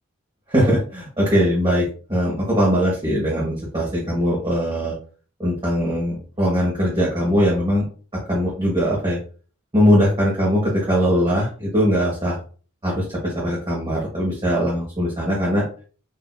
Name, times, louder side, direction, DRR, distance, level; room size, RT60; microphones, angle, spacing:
voice 1, 0.5-1.8 2.1-4.9 5.4-7.8 8.3-9.2 9.7-12.4 12.8-15.6, equal, 20° right, -5 dB, 1.2 m, -20 dB
6.6 x 2.7 x 2.2 m, 0.39 s
head